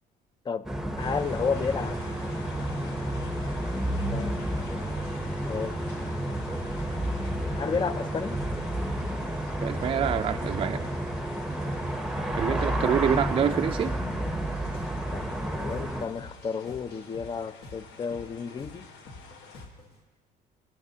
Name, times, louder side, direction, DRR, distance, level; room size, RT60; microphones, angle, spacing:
sound 1, 0.7-16.1, right 1 dB, 5° right, 0.8 m, -31 dB
sound 2, 1.0-19.7, left 5 dB, 90° left, 1.3 m, -48 dB
voice 1, 1.0-2.0 4.1-4.8 5.4-5.8 7.6-8.4 15.1-18.8, left 6 dB, 25° left, 15 dB, 0.4 m, -32 dB
voice 2, 9.6-10.8 12.4-13.9, right 8 dB, 30° right, 8 dB, 0.4 m, -26 dB
sound 3, 12.3-20.0, left 2 dB, 70° left, 1.7 m, -48 dB
19.5 x 9.4 x 2.8 m, 1.3 s
cardioid pair, 110°, 17 cm